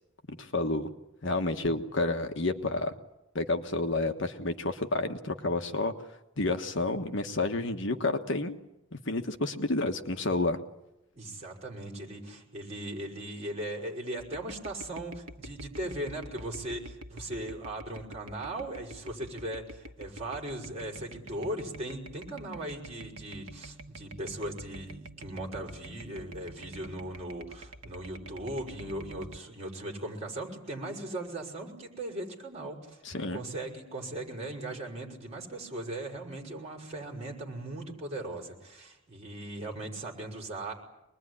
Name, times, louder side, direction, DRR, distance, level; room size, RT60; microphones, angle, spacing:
voice 1, 0.3-0.9 1.2-2.9 3.3-5.9 6.4-8.5 8.9-10.6 33.0-33.4, left 2 dB, 55° left, 6 dB, 1.4 m, -30 dB
voice 2, 11.1-33.0 33.3-40.7, right 1 dB, 30° right, 0 dB, 6.0 m, -38 dB
sound 1, 14.2-29.4, right 1 dB, 90° right, 1.3 m, -47 dB
25.0 x 21.0 x 9.9 m, 0.90 s
head